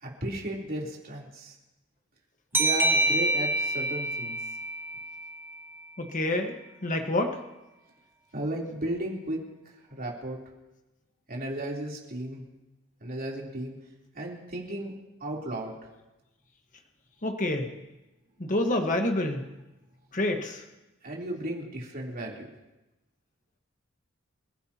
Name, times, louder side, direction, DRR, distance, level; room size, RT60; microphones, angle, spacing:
voice 1, 0.0-1.5 2.5-4.4 8.3-9.4 9.9-10.4 11.3-12.4 13.0-13.8 14.1-14.9 15.2-15.7 21.0-22.4, right 1 dB, 45° right, -3 dB, 3.6 m, -34 dB
sound 1, 2.5-5.9, right 1 dB, 10° right, 1.0 m, -27 dB
voice 2, 6.0-6.5 6.8-7.4 17.2-17.7 18.4-19.5 20.1-20.6, left 1 dB, 40° left, 4 dB, 1.4 m, -27 dB
28.0 x 15.0 x 3.0 m, 0.99 s
head